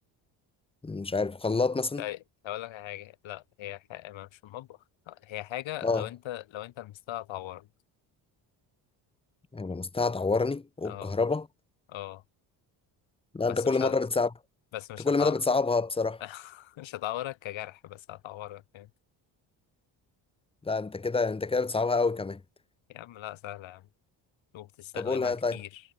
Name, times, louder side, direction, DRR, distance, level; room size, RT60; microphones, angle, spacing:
voice 1, 0.8-2.0 5.8-6.1 9.5-11.5 13.3-14.3 15.0-16.2 20.6-22.4 25.0-25.6, left 4 dB, 10° left, 0.8 m, -27 dB
voice 2, 2.4-4.8 5.1-7.7 10.8-11.1 11.9-12.2 13.5-13.9 14.7-15.3 16.2-18.9 22.9-23.9 24.5-25.8, left 14 dB, 70° left, 3.8 m, -39 dB
supercardioid pair, 70°, 47 cm